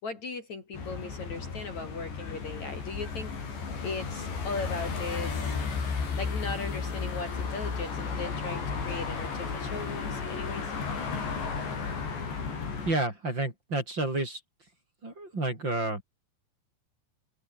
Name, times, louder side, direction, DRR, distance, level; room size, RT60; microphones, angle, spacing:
voice 1, 0.0-3.3 3.8-5.6 6.2-10.7, left 4 dB, 45° left, 4.5 m, -38 dB
sound 1, 0.7-12.9, left 5 dB, 85° left, 8.9 m, -34 dB
voice 2, 12.8-14.4 15.0-16.0, right 2 dB, 25° right, 6.2 m, -30 dB
omnidirectional pair, 4.9 m